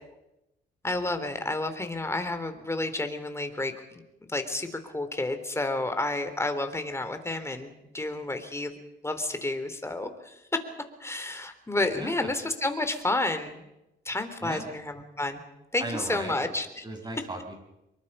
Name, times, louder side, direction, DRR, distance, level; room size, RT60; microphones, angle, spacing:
voice 1, 0.8-4.0 4.3-8.7 9.0-10.6 11.0-13.7 14.0-15.4 15.7-16.8, left 2 dB, 15° left, 8 dB, 3.3 m, -30 dB
voice 2, 11.9-12.3 14.4-14.7 15.8-16.5 16.8-17.5, right 1 dB, 20° right, 4 dB, 6.3 m, -37 dB
25.0 x 23.0 x 5.5 m, 0.90 s
cardioid pair, 90°, 20 cm